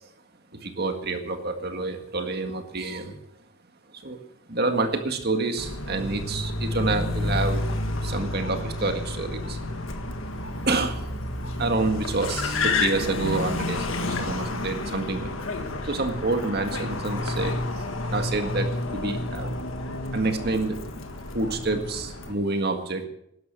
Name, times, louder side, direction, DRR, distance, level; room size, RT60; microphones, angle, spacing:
voice 1, 0.5-3.2 3.9-4.2 4.5-7.7 8.0-9.6 10.7-11.0 11.6-15.3 15.8-19.6 20.1-20.8 21.3-23.0, right 3 dB, 50° right, 6 dB, 1.9 m, -28 dB
Car, 5.6-22.3, left 2 dB, 75° left, 1.7 m, -30 dB
12.5 x 11.5 x 7.6 m, 0.78 s
head